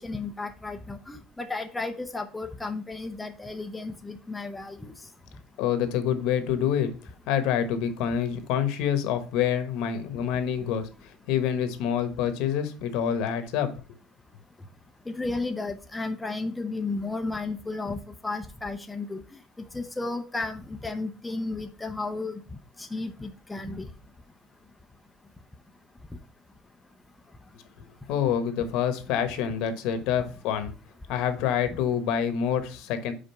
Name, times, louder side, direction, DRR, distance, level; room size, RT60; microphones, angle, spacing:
voice 1, 0.0-4.9 15.1-19.2 19.7-22.4 22.8-23.9, left 3 dB, 5° left, 6 dB, 0.5 m, -33 dB
voice 2, 5.6-6.9 7.3-13.7 28.1-30.7 31.1-33.1, left 8 dB, 65° left, 9 dB, 1.2 m, -27 dB
5.2 x 5.0 x 5.6 m, 0.35 s
cardioid pair, 165°, 0 cm